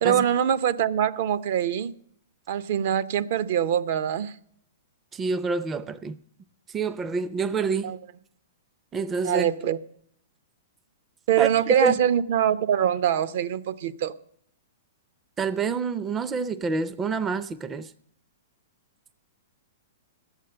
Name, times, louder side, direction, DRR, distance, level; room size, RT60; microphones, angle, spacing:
voice 1, 0.0-1.9 2.5-4.3 7.8-8.0 9.2-9.8 11.3-14.1, right 9 dB, 60° right, 0.7 m, -23 dB
voice 2, 5.1-6.2 6.7-8.0 8.9-9.5 11.4-11.9 15.4-17.9, right 4 dB, 20° right, 0.5 m, -27 dB
11.5 x 8.2 x 7.7 m
hypercardioid pair, 130°, 0 cm